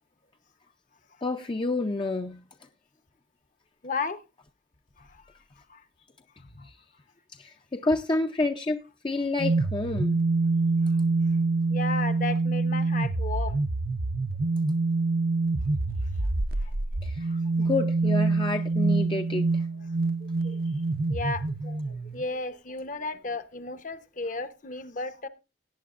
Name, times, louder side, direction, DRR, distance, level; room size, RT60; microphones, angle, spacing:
voice 1, 1.2-2.4 5.3-5.4 6.6-6.8 7.4-10.2 17.0-17.3 17.6-19.7, left 2 dB, 25° left, 0.5 m, -29 dB
voice 2, 3.8-4.2 5.0-5.1 5.7-5.8 6.4-6.7 11.7-13.6 17.3-17.4 19.7-19.8 20.2-20.6 21.1-25.3, left 3 dB, 45° left, 0.9 m, -34 dB
sound 1, 9.4-22.2, right 3 dB, 55° right, 0.7 m, -26 dB
17.5 x 9.3 x 2.5 m
head